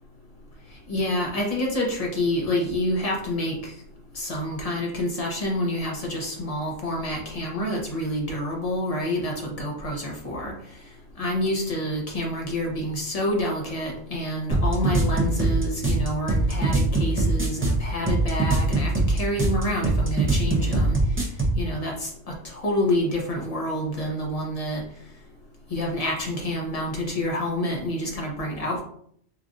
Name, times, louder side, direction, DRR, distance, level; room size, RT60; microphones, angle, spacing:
voice 1, 0.9-3.7 4.1-10.5 11.2-21.0 21.6-24.8 25.7-28.8, left 1 dB, 35° left, -1 dB, 0.8 m, -28 dB
sound 1, 14.5-21.6, right 2 dB, 15° right, 0.4 m, -22 dB
4.8 x 2.5 x 2.5 m, 0.66 s
omnidirectional pair, 1.4 m